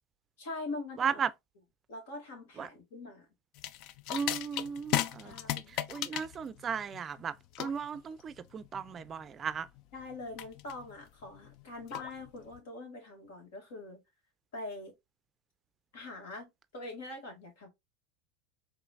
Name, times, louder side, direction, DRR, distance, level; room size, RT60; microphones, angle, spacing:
voice 1, 0.4-1.2 1.9-3.3 5.2-5.8 9.9-14.0 14.5-14.9 15.9-17.7, left 2 dB, 75° left, 2.2 m, -43 dB
voice 2, 1.0-1.3 2.6-2.7 4.1-5.3 5.9-9.7, right 7 dB, 30° right, 0.4 m, -35 dB
sound 1, 3.6-12.6, left 13 dB, 55° left, 0.4 m, -37 dB
4.9 x 3.1 x 2.4 m
hypercardioid pair, 95°, 0 cm